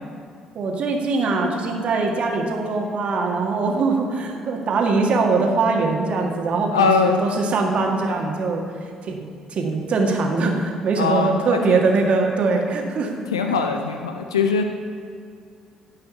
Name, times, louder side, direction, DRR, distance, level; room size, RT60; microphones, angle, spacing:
voice 1, 0.6-8.6 9.0-9.2 9.5-13.1, right 3 dB, 50° right, 1 dB, 1.7 m, -22 dB
voice 2, 6.7-7.2 11.0-11.8 13.3-14.6, left 5 dB, 80° left, 5 dB, 0.5 m, -21 dB
15.5 x 5.6 x 7.0 m, 2.3 s
figure-of-eight pair, 45°, 3 cm